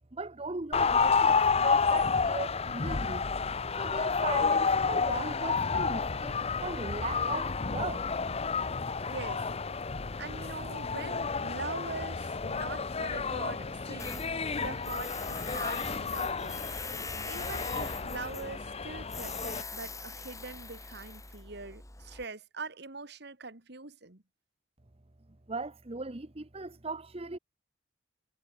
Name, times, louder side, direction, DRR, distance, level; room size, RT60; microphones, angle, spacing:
voice 1, 0.1-3.3 3.8-8.1 8.7-8.8 25.5-27.4, right 3 dB, 35° right, 1.1 m, -38 dB
sound 1, 0.7-19.6, left 5 dB, 35° left, 0.8 m, -30 dB
voice 2, 9.1-9.5 10.2-17.0 17.2-24.2, right 3 dB, 60° right, 2.5 m, -43 dB
Tools, 14.0-22.2, left 4 dB, 20° left, 3.6 m, -42 dB
head